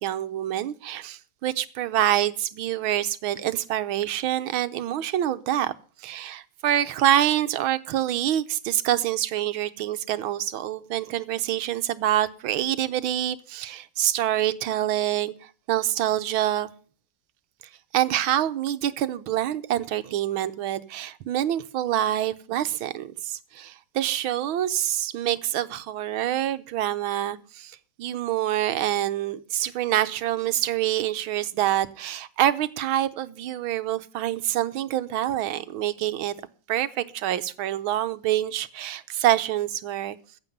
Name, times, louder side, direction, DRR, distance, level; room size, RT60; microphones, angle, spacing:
voice 1, 0.0-5.7 6.0-16.7 17.9-36.3 36.7-40.2, right 12 dB, 85° right, 12 dB, 1.7 m, -26 dB
15.0 x 8.5 x 5.4 m, 0.43 s
omnidirectional pair, 2.2 m